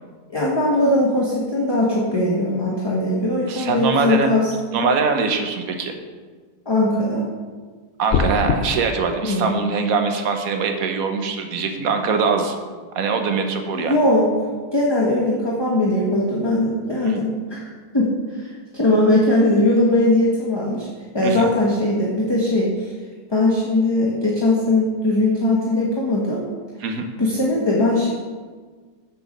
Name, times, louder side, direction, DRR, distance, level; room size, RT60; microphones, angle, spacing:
voice 1, 0.3-4.5 6.6-7.2 9.2-9.5 13.7-14.2 14.7-18.0 18.4-20.9 21.1-22.9 23.3-26.4 27.2-28.1, left 1 dB, 20° left, -5 dB, 1.1 m, -20 dB
voice 2, 3.5-4.3 4.7-6.0 8.0-12.5 12.9-14.0 17.0-17.2 21.2-21.5 26.8-27.0, right 5 dB, 65° right, 5 dB, 1.3 m, -22 dB
sound 1, 8.1-8.6, left 5 dB, 60° left, 0.8 m, -20 dB
7.3 x 6.9 x 5.2 m, 1.5 s
omnidirectional pair, 1.7 m